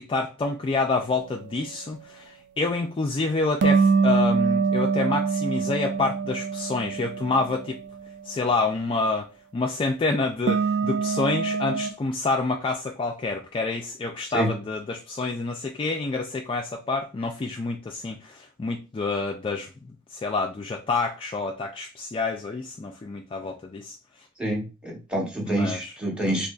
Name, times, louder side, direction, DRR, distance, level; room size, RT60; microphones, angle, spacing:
voice 1, 0.0-7.8 8.2-24.0 25.5-25.9, left 3 dB, 25° left, 0.3 m, -28 dB
sound 1, 3.6-7.8 10.5-11.9, right 5 dB, 55° right, 0.4 m, -24 dB
voice 2, 24.4-26.5, right 1 dB, 5° right, 1.1 m, -27 dB
3.9 x 2.8 x 2.3 m
head